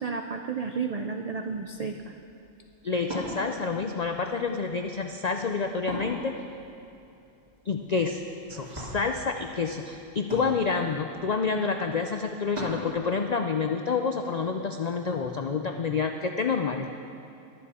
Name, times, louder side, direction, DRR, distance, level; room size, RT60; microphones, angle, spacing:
voice 1, 0.0-2.1, right 5 dB, 80° right, 4 dB, 0.3 m, -32 dB
Wood, 1.4-12.9, equal, 30° right, 3.5 m, -42 dB
voice 2, 2.8-6.3 7.7-8.2 8.5-16.9, left 5 dB, 75° left, 5 dB, 0.3 m, -28 dB
21.5 x 7.5 x 4.2 m, 2.8 s
omnidirectional pair, 1.4 m